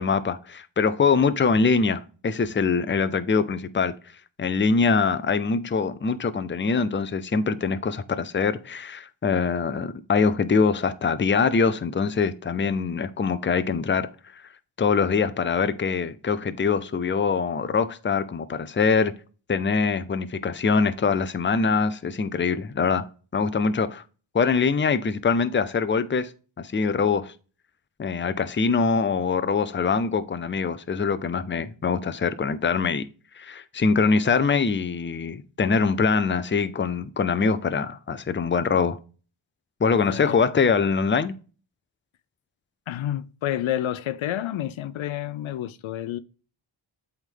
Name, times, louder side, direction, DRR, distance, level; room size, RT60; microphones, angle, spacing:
voice 1, 0.0-3.9 4.4-14.1 14.8-19.1 19.5-23.1 23.3-24.0 24.3-26.3 26.6-27.3 28.0-33.0 33.4-39.0 39.8-41.3, left 5 dB, 25° left, 0.6 m, -23 dB
voice 2, 39.9-40.4 42.9-46.2, left 12 dB, 75° left, 0.6 m, -29 dB
7.9 x 3.6 x 3.7 m
cardioid pair, 60°, 48 cm